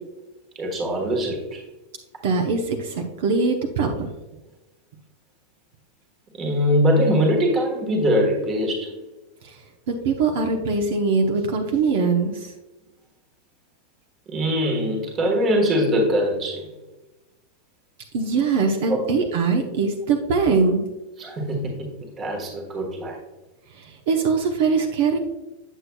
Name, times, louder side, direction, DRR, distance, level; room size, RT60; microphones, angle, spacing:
voice 1, 0.5-1.6 6.4-8.9 14.3-16.7 18.9-19.1 21.2-21.9 22.2-23.2, equal, 20° right, 0 dB, 1.3 m, -22 dB
voice 2, 2.2-4.1 9.4-9.6 9.9-12.5 18.1-20.8 23.7-25.2, right 4 dB, 55° right, 2 dB, 0.8 m, -22 dB
8.1 x 7.6 x 2.3 m, 1.1 s
supercardioid pair, 175°, 0 cm